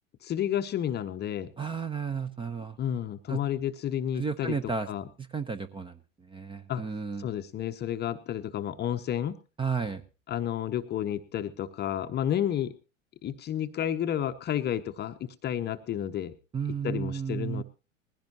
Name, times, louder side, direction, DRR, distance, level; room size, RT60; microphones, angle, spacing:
voice 1, 0.2-1.5 2.8-5.1 6.7-6.8 7.2-9.4 10.3-12.7 13.2-16.4 16.8-17.6, left 10 dB, 25° left, 9 dB, 0.9 m, -31 dB
voice 2, 1.6-2.8 3.3-3.4 4.2-4.9 5.2-6.0 6.3-7.3 9.6-10.0 16.5-17.6, right 5 dB, 15° right, 13 dB, 0.8 m, -33 dB
20.0 x 16.0 x 2.9 m, 0.32 s
figure-of-eight pair, 90°, 40 cm